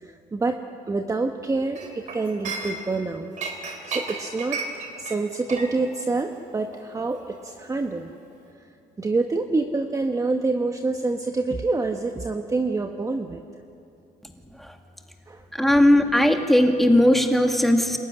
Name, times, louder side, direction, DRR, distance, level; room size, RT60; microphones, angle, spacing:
voice 1, 0.0-0.6 0.9-3.3 3.9-4.6 5.0-8.1 9.0-13.4 15.3-15.4, right 3 dB, 20° right, 4 dB, 1.1 m, -26 dB
Chink clink, 1.8-3.0 3.4-8.0 8.3-8.5, right 4 dB, 45° right, 3.6 m, -35 dB
voice 2, 15.5-18.0, left 1 dB, ahead, 3 dB, 2.1 m, -18 dB
27.0 x 14.5 x 9.9 m, 2.6 s
cardioid pair, 110°, 17 cm